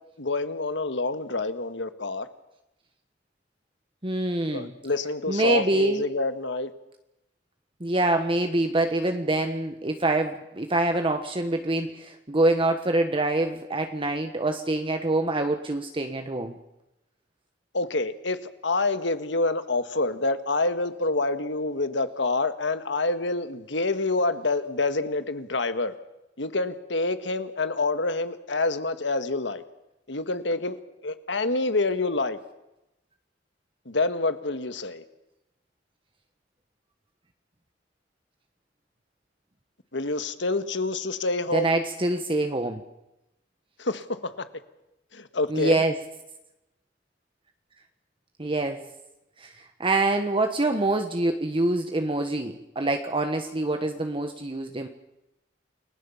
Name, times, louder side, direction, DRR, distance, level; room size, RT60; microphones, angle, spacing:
voice 1, 0.2-2.3 4.5-6.7 17.7-25.9 26.4-29.6 30.1-32.4 33.8-35.0 39.9-41.7 43.8-44.5 45.1-45.8, left 3 dB, 70° left, 10 dB, 1.7 m, -27 dB
voice 2, 4.0-4.7 5.3-6.0 7.8-16.6 41.5-42.8 45.5-46.0 48.4-48.8 49.4-49.5 49.8-54.9, right 2 dB, 30° right, 5 dB, 1.3 m, -25 dB
29.0 x 19.0 x 7.2 m, 0.92 s
head